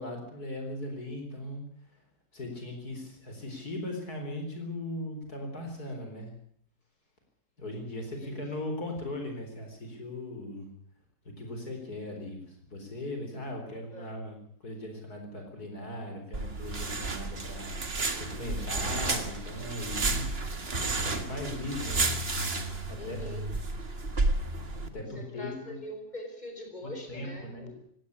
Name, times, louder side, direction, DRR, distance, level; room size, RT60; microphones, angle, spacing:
voice 1, 0.0-1.6 2.3-6.3 7.6-10.7 11.4-20.3 20.8-22.2 22.9-23.2 24.9-25.8 26.8-27.7, left 1 dB, 65° left, 4 dB, 4.9 m, -38 dB
sound 1, 16.3-24.9, right 3 dB, 35° right, 2.1 m, -32 dB
voice 2, 23.0-23.4 25.1-27.8, left 1 dB, 25° left, 4 dB, 5.2 m, -43 dB
18.5 x 17.0 x 9.9 m, 0.64 s
omnidirectional pair, 1.8 m